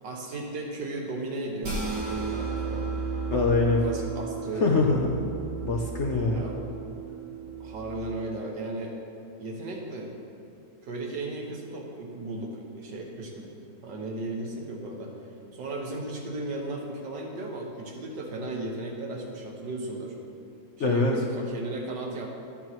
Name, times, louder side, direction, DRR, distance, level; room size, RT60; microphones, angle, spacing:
voice 1, 0.0-2.9 3.8-4.7 6.3-6.6 7.6-9.0 9.4-10.1 10.8-15.1 15.5-20.2 20.9-22.3, right 2 dB, 85° right, 0 dB, 1.8 m, -35 dB
sound 1, 1.6-8.1, right 4 dB, 65° right, 2.2 m, -34 dB
voice 2, 3.3-3.8 4.6-5.2 5.6-6.4 20.8-21.2, left 3 dB, 60° left, 0 dB, 0.8 m, -23 dB
12.5 x 8.2 x 3.0 m, 2.4 s
omnidirectional pair, 1.9 m